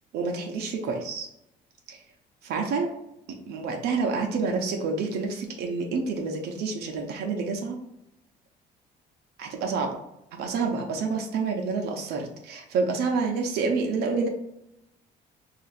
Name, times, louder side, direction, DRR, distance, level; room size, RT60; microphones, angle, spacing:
voice 1, 0.1-1.3 1.9-2.0 2.4-2.9 3.3-7.8 9.4-10.0 10.3-14.3, right 4 dB, 70° right, 2 dB, 0.7 m, -28 dB
2.8 x 2.5 x 4.2 m, 0.83 s
cardioid pair, 110°, 17 cm